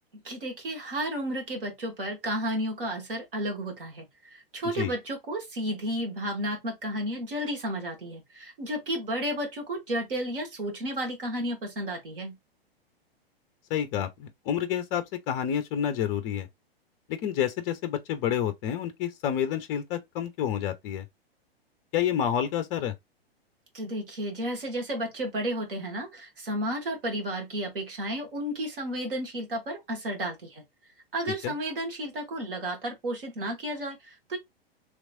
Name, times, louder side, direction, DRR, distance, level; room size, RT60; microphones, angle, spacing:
voice 1, 0.1-12.4 23.7-30.6 31.1-34.4, right 1 dB, 60° right, 1.6 m, -32 dB
voice 2, 13.7-16.5 17.1-21.0 21.9-22.9 31.4-31.5, left 9 dB, 25° left, 0.5 m, -29 dB
3.1 x 3.0 x 2.5 m
figure-of-eight pair, 105°, 31 cm